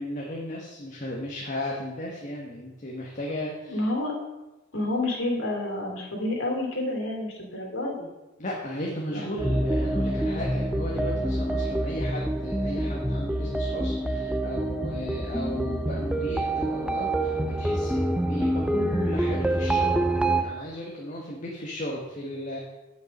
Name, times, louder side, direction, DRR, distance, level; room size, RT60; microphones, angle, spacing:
voice 1, 0.0-3.8 8.4-20.1 20.3-22.6, left 1 dB, 40° left, -2 dB, 1.2 m, -35 dB
voice 2, 3.7-4.2 4.7-8.1 9.1-9.3, left 1 dB, 85° left, -1 dB, 2.6 m, -29 dB
sound 1, 9.4-20.4, right 1 dB, 5° right, 0.5 m, -26 dB
9.4 x 5.4 x 5.2 m, 1.0 s
head